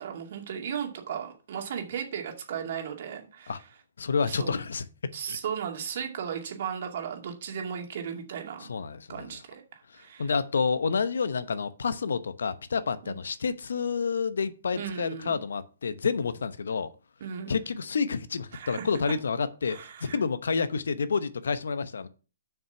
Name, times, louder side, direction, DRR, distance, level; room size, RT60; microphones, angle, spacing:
voice 1, 0.0-3.6 4.2-4.5 5.1-8.7 9.1-10.3 13.0-13.2 14.7-15.4 17.2-17.6 18.5-18.9 19.7-20.2, right 8 dB, 55° right, 2.4 m, -36 dB
voice 2, 4.0-5.4 8.6-9.3 9.9-16.9 17.5-22.1, left 5 dB, 75° left, 0.9 m, -29 dB
7.2 x 6.2 x 5.7 m
hypercardioid pair, 135°, 0 cm